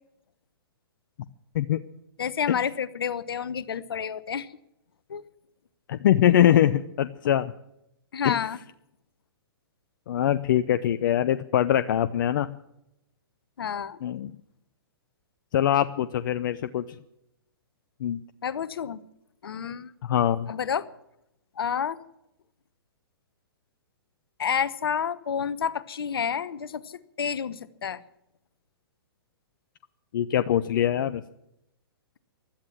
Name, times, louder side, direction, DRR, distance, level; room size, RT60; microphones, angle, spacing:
voice 1, 2.2-4.5 5.1-5.3 8.1-8.6 13.6-14.0 18.4-19.0 19.4-19.9 20.5-20.9 21.6-22.0 24.4-28.0, left 7 dB, 70° left, 16 dB, 1.0 m, -29 dB
voice 2, 5.9-7.5 8.2-8.4 10.1-12.5 14.0-14.3 15.5-16.8 18.0-18.2 20.0-20.5 30.1-31.2, left 11 dB, 55° left, 12 dB, 0.7 m, -23 dB
16.5 x 12.0 x 7.2 m, 0.83 s
figure-of-eight pair, 120°, 13 cm